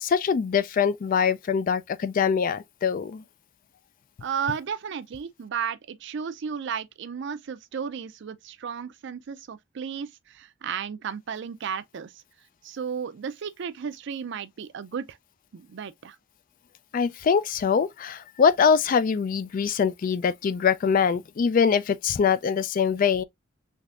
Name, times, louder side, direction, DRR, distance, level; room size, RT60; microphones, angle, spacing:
voice 1, 0.0-3.2 16.9-23.2, left 6 dB, 45° left, 0.3 m, -23 dB
voice 2, 4.2-12.1 12.6-15.2 15.5-16.2, right 7 dB, 65° right, 0.4 m, -34 dB
3.5 x 3.3 x 2.4 m
head